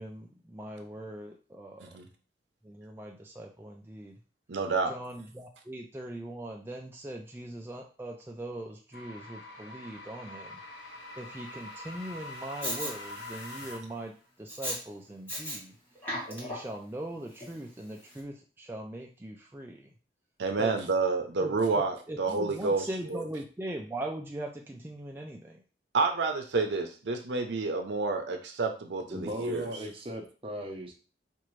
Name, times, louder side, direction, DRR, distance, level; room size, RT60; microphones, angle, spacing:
voice 1, 0.0-1.9 2.6-4.1 4.9-10.6 11.2-14.1 14.4-15.7 16.3-19.9 20.6-20.7 21.4-21.5 22.1-25.6, right 1 dB, 10° right, 0 dB, 0.3 m, -40 dB
voice 2, 4.5-5.0 20.4-23.2 25.9-29.7, right 4 dB, 80° right, 5 dB, 0.6 m, -29 dB
sound 1, 8.9-14.1, left 2 dB, 80° left, 1.1 m, -44 dB
Respiratory sounds, 12.6-12.9 14.5-14.8 15.3-15.6 15.9-16.8 17.4-17.5, equal, 10° left, 1.2 m, -35 dB
voice 3, 29.1-30.9, right 1 dB, 30° right, 1 dB, 0.7 m, -37 dB
4.4 x 2.4 x 3.1 m, 0.36 s
head